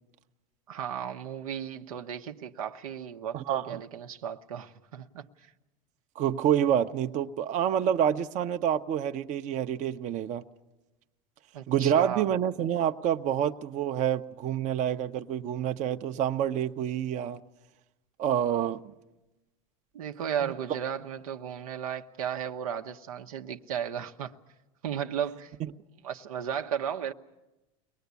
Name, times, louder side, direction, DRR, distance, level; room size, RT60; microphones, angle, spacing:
voice 1, 0.7-5.5 11.5-12.3 19.9-24.4 24.8-25.6 26.0-27.1, right 8 dB, 90° right, 1.0 m, -35 dB
voice 2, 3.3-3.8 6.2-10.4 11.7-17.4 18.2-18.8, right 9 dB, 45° right, 0.8 m, -27 dB
23.5 x 19.0 x 8.2 m
supercardioid pair, 110°, 18 cm